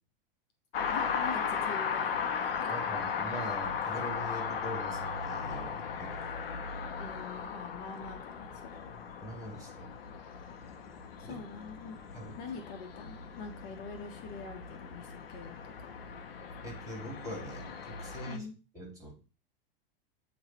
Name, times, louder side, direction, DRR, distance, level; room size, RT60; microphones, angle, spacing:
sound 1, 0.7-18.4, left 6 dB, 80° left, 1.0 m, -37 dB
voice 1, 0.9-2.7 7.0-8.9 11.2-12.0 12.4-15.6 18.3-18.6, left 4 dB, 50° left, 5 dB, 1.5 m, -44 dB
voice 2, 2.7-6.3 9.2-9.9 11.2-11.4 12.1-12.4 16.6-18.5 18.7-19.1, equal, 10° right, 0 dB, 3.1 m, -42 dB
8.6 x 3.3 x 4.5 m, 0.34 s
hypercardioid pair, 110°, 29 cm